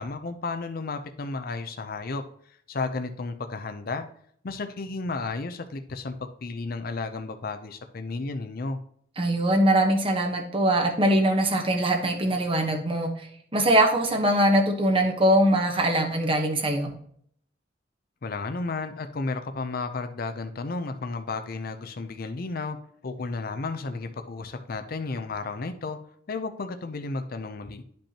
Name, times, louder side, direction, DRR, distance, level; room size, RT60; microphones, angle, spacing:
voice 1, 0.0-2.2 2.7-4.1 4.4-8.8 18.2-22.8 23.0-26.0 26.3-27.8, left 3 dB, 50° left, 8 dB, 0.6 m, -33 dB
voice 2, 9.2-16.9, right 1 dB, 30° right, 3 dB, 1.1 m, -22 dB
10.5 x 5.3 x 2.9 m, 0.64 s
head